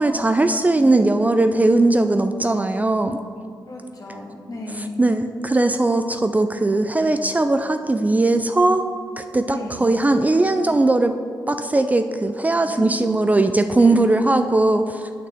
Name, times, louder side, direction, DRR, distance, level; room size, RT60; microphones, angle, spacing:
voice 1, 0.0-3.2 4.8-8.8 9.2-11.1 11.5-15.1, right 2 dB, 20° right, 8 dB, 0.4 m, -19 dB
voice 2, 3.7-5.0 9.5-9.8 12.7-12.9 13.8-13.9, left 2 dB, 50° left, -1 dB, 1.6 m, -34 dB
9.1 x 5.8 x 3.6 m, 2.2 s
cardioid pair, 65°, 8 cm